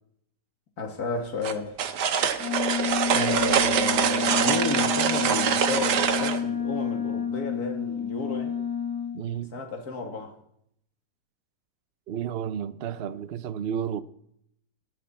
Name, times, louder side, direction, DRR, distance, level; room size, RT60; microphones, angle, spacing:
voice 1, 0.8-1.8 3.1-8.5 9.5-10.3, left 3 dB, 60° left, 2.7 m, -32 dB
sound 1, 1.4-6.4, right 8 dB, 70° right, 1.5 m, -24 dB
Wind instrument woodwind instrument, 2.4-9.2, left 7 dB, 75° left, 2.8 m, -30 dB
voice 2, 9.1-9.5 12.1-14.0, right 8 dB, 55° right, 0.7 m, -31 dB
18.0 x 13.0 x 4.4 m
omnidirectional pair, 1.9 m